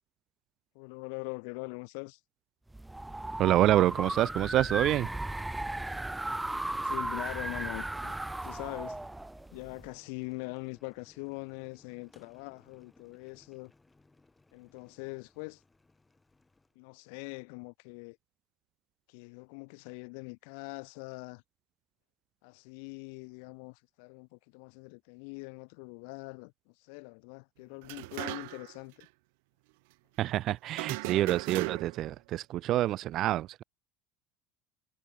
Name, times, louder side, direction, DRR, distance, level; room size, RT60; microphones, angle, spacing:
voice 1, 0.7-2.2 6.3-8.1 8.4-9.0 9.5-13.7 14.5-15.6 16.7-18.2 19.1-21.4 22.4-29.1, left 38 dB, 75° left, 1.4 m, -43 dB
sound 1, 2.7-9.9, right 2 dB, 10° right, 1.5 m, -36 dB
Boiling, 3.3-16.8, left 3 dB, 15° left, 7.4 m, -63 dB
voice 2, 3.4-5.1 30.2-33.6, right 14 dB, 55° right, 0.6 m, -27 dB
sound 2, 27.8-28.8 29.0-29.1 30.7-32.1, right 27 dB, 80° right, 1.2 m, -37 dB
supercardioid pair, 95°, 0 cm